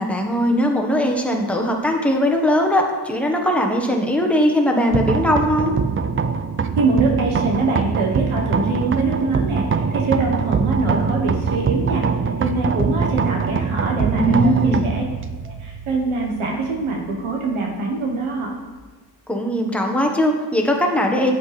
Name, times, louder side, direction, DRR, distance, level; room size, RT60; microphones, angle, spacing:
voice 1, 0.0-5.8 14.1-14.9 19.3-21.3, equal, 5° left, 1 dB, 1.3 m, -19 dB
sound 1, 4.9-18.8, right 5 dB, 25° right, 0.5 m, -23 dB
voice 2, 6.8-12.0 12.4-15.0 15.4-18.5, right 3 dB, 75° right, 0 dB, 1.4 m, -23 dB
8.1 x 7.4 x 3.4 m, 1.3 s
cardioid pair, 60°, 49 cm